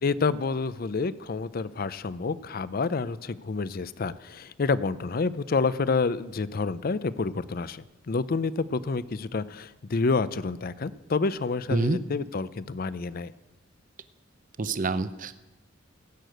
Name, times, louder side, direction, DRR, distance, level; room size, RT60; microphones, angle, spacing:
voice 1, 0.0-13.3, left 4 dB, 50° left, 17 dB, 0.5 m, -28 dB
voice 2, 14.6-15.5, right 3 dB, 40° right, 13 dB, 0.6 m, -27 dB
17.0 x 6.7 x 7.8 m, 1.0 s
head